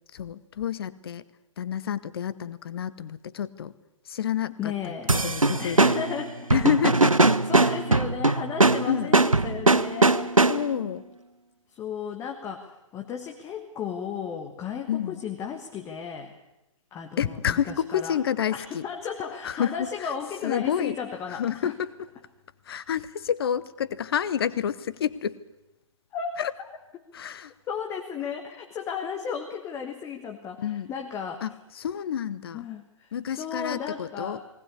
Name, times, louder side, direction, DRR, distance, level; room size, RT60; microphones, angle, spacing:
voice 1, 0.1-1.2 1.6-3.7 4.1-4.7 5.2-5.9 6.5-7.2 7.6-7.7 8.9-9.1 10.5-11.0 14.9-15.2 17.2-18.8 19.4-20.1 20.4-21.0 21.3-21.9 22.7-25.4 26.4-26.5 27.1-27.5 30.6-30.9 31.4-32.7 33.1-34.4, left 9 dB, 45° left, 16 dB, 1.0 m, -29 dB
voice 2, 4.6-5.1 5.6-6.5 7.2-10.4 11.7-16.4 16.9-18.2 18.5-21.7 26.1-26.4 27.7-31.4 32.5-34.4, left 7 dB, 15° left, 3 dB, 1.4 m, -34 dB
sound 1, 5.1-10.8, right 2 dB, 90° right, 0.8 m, -21 dB
19.0 x 19.0 x 8.4 m, 0.92 s
figure-of-eight pair, 125°, 17 cm